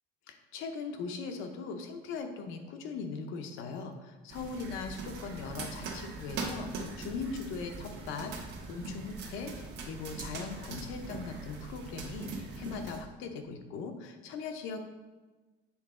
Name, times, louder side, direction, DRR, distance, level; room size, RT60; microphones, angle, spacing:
voice 1, 0.3-14.8, left 5 dB, 65° left, 6 dB, 0.8 m, -40 dB
sound 1, 4.3-13.0, right 4 dB, 50° right, 1.0 m, -41 dB
7.1 x 3.8 x 3.7 m, 1.3 s
cardioid pair, 155°, 21 cm